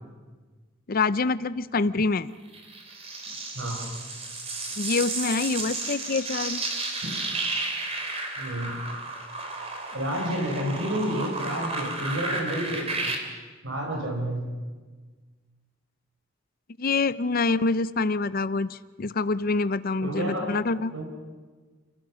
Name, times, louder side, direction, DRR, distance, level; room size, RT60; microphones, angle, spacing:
voice 1, 0.9-2.3 4.8-6.6 16.8-20.9, left 3 dB, 50° left, 15 dB, 0.6 m, -26 dB
sound 1, 2.5-13.2, right 3 dB, 35° right, 3.1 m, -32 dB
voice 2, 3.5-3.9 8.4-8.7 9.9-13.1 13.6-14.4 20.0-20.5 20.9-21.0, equal, 80° right, 0 dB, 4.9 m, -30 dB
29.5 x 16.0 x 6.3 m, 1.4 s
head